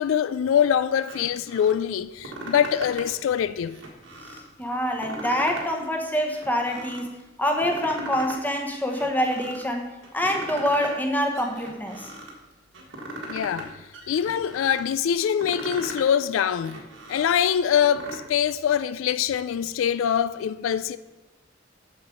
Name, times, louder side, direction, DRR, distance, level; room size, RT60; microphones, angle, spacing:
voice 1, 0.0-3.8 13.3-13.7 14.1-16.8 17.1-21.0, left 8 dB, 85° left, 0.3 m, -24 dB
sound 1, 1.0-1.7 2.1-3.2 3.6-4.4 4.9-5.8 6.1-7.0 7.4-8.4 8.7-9.6 10.0-11.0 11.3-12.3 12.7-13.7 13.9-14.8 15.2-16.1 16.5-18.2, right 1 dB, 80° right, 1.5 m, -38 dB
voice 2, 4.6-7.1 7.4-12.1, equal, 10° left, 1.0 m, -26 dB
7.1 x 6.5 x 5.2 m
head